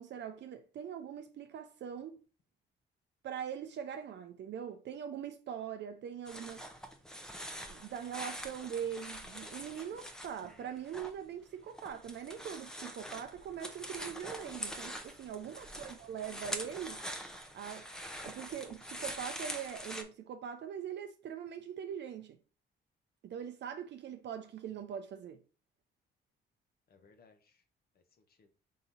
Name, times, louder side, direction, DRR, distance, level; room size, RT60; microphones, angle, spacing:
voice 1, 0.0-2.2 3.2-6.6 7.7-17.0 17.5-17.9 18.2-22.4 23.2-25.4, right 8 dB, 60° right, 0.5 m, -42 dB
sound 1, 6.3-11.1 11.4-20.0, equal, 5° left, 0.6 m, -44 dB
voice 2, 15.3-16.0 26.9-27.6 27.9-28.5, left 4 dB, 50° left, 0.8 m, -65 dB
3.8 x 2.9 x 4.0 m
cardioid pair, 90°, 20 cm